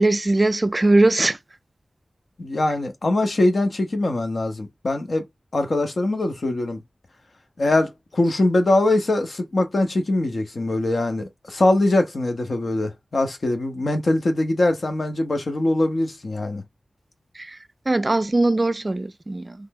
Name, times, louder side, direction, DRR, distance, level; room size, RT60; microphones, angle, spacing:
voice 1, 0.0-1.4 17.9-19.5, right 2 dB, 35° right, 0.3 m, -20 dB
voice 2, 2.4-5.3 5.5-6.8 7.6-16.6, left 2 dB, 60° left, 0.8 m, -22 dB
3.2 x 2.0 x 3.6 m
wide cardioid pair, 80°, 0 cm